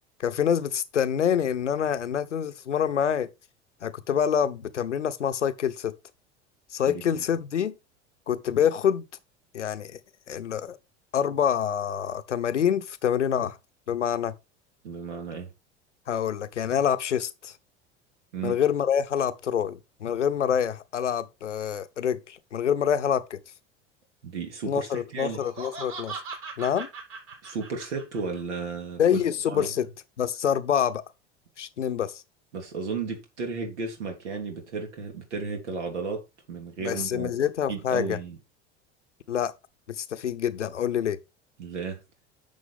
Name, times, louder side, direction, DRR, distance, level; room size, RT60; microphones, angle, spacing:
voice 1, 0.2-3.3 3.8-5.9 6.7-7.7 8.3-9.0 9.5-10.0 10.3-10.8 11.1-13.6 13.9-14.3 16.1-17.5 18.4-23.4 24.7-26.2 26.6-26.9 29.0-29.9 30.2-31.0 31.6-32.2 36.8-38.2 39.3-39.5 39.9-41.2, left 8 dB, 80° left, 0.9 m, -26 dB
voice 2, 6.8-7.2 14.8-15.5 18.3-18.6 24.2-25.4 27.4-29.2 29.5-29.7 32.5-36.2 36.5-37.4 37.7-38.4 41.6-42.0, right 4 dB, 70° right, 3.2 m, -34 dB
Laughter, 25.1-28.4, right 4 dB, 40° right, 5.2 m, -39 dB
10.5 x 6.8 x 3.5 m
figure-of-eight pair, 75°, 35 cm